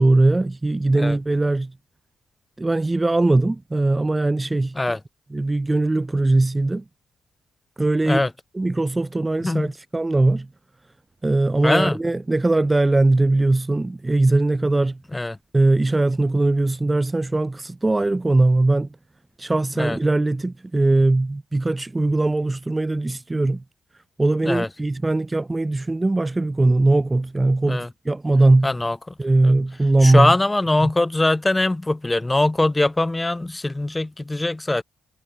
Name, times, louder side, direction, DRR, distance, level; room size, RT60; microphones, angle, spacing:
voice 1, 0.0-1.7 2.6-4.8 5.3-6.8 7.8-8.2 8.5-10.5 11.2-15.0 15.5-18.9 19.4-23.6 24.2-28.7 29.2-30.3 30.8-30.9, right 2 dB, 20° right, 0.4 m, -20 dB
voice 2, 11.6-12.0 15.1-15.4 19.8-20.0 24.4-24.7 27.7-27.9 28.6-29.1 29.4-29.5 30.0-34.8, left 2 dB, 15° left, 1.0 m, -22 dB
cardioid pair, 75°, 0 cm